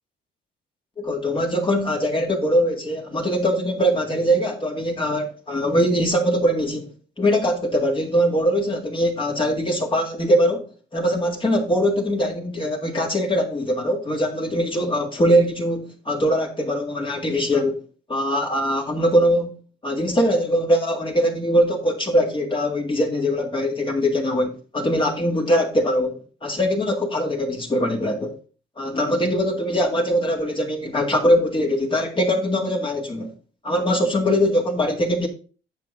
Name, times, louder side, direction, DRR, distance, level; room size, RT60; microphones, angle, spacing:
voice 1, 1.0-17.8 18.1-19.5 19.8-28.4 28.8-33.3 33.6-35.3, equal, 25° left, 1.9 m, -22 dB
9.0 x 6.7 x 3.7 m
cardioid pair, 90°, 20 cm